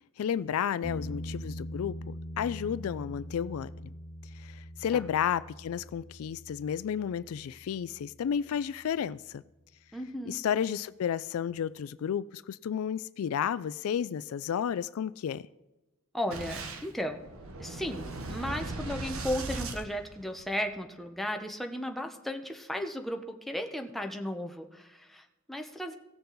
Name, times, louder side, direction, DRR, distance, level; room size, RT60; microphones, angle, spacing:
voice 1, 0.0-2.0 2.4-3.7 4.4-9.4 10.3-15.5, left 8 dB, 70° left, 17 dB, 0.3 m, -32 dB
sound 1, 0.8-8.4 11.5-11.6, equal, 35° left, 0.7 m, -43 dB
voice 2, 9.9-10.4 16.1-17.2 17.6-26.0, equal, ahead, 3 dB, 0.8 m, -35 dB
Boom, 16.3-20.7, right 2 dB, 65° right, 1.1 m, -38 dB
17.0 x 6.7 x 4.0 m, 1.0 s
head